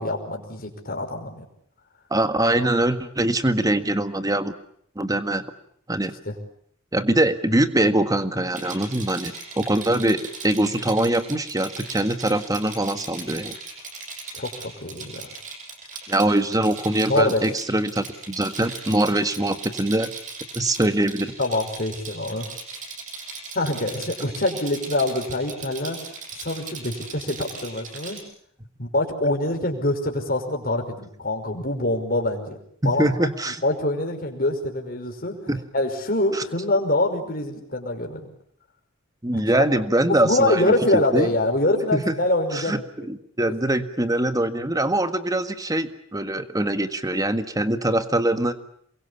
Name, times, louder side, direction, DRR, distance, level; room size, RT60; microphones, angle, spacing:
voice 1, 0.0-1.4 6.3-6.4 14.3-15.3 17.1-17.4 21.4-22.5 23.6-26.0 26.4-28.2 28.8-32.6 32.8-33.1 33.5-35.4 35.7-38.3 39.3-39.4 40.1-42.7 43.5-43.6, left 2 dB, 45° left, 3 dB, 5.5 m, -25 dB
voice 2, 2.1-4.5 4.9-5.4 5.9-6.1 6.9-13.6 16.1-20.1 20.5-21.3 32.8-33.6 35.5-35.6 36.3-36.4 39.2-41.3 41.9-42.1 42.5-48.5, right 1 dB, 15° right, 10 dB, 1.7 m, -23 dB
Rattle, 8.5-28.2, right 4 dB, 40° right, 7.1 m, -38 dB
28.0 x 23.0 x 8.4 m, 0.67 s
head